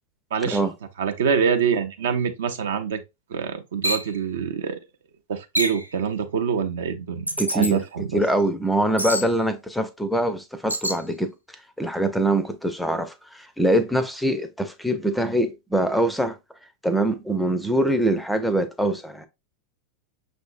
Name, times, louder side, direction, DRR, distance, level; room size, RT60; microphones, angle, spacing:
voice 1, 0.3-0.7 1.0-3.0 3.3-4.8 5.3-8.2, right 7 dB, 60° right, 0.5 m, -25 dB
sound 1, 3.8-4.1 5.6-5.9 7.3-7.7 9.0-9.3 10.7-11.0, equal, 90° left, 0.5 m, -26 dB
voice 2, 7.4-11.3 11.8-16.4 16.8-19.3, right 1 dB, ahead, 0.4 m, -23 dB
6.0 x 2.6 x 2.4 m
figure-of-eight pair, 90°, 0 cm